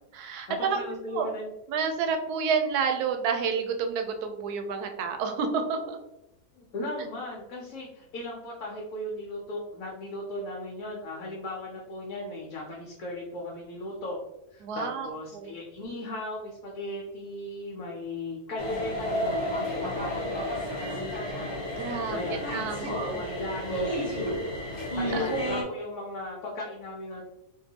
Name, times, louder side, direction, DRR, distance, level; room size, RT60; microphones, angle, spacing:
voice 1, 0.1-0.8 1.1-1.3 1.7-6.0 14.6-15.1 15.3-15.5 21.8-22.2 22.5-23.2 25.1-25.2, right 6 dB, 85° right, 5 dB, 1.1 m, -29 dB
voice 2, 0.7-1.5 6.5-14.2 14.5-20.8 22.1-24.4 24.8-27.2, left 1 dB, 70° left, -3 dB, 1.1 m, -37 dB
sound 1, 18.6-25.6, equal, 25° left, 0.7 m, -31 dB
3.7 x 2.3 x 2.7 m, 0.91 s
omnidirectional pair, 1.6 m